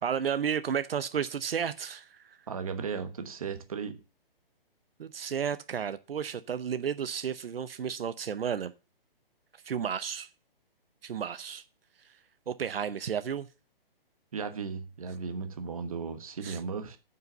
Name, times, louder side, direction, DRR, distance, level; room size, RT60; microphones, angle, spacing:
voice 1, 0.0-2.4 5.0-8.7 9.6-10.3 11.0-11.6 12.0-12.2 12.5-13.5 16.4-16.6, right 7 dB, 75° right, 0.8 m, -32 dB
voice 2, 2.5-4.0 14.3-17.0, right 5 dB, 35° right, 1.1 m, -36 dB
9.4 x 5.6 x 6.7 m
hypercardioid pair, 180°, 30 cm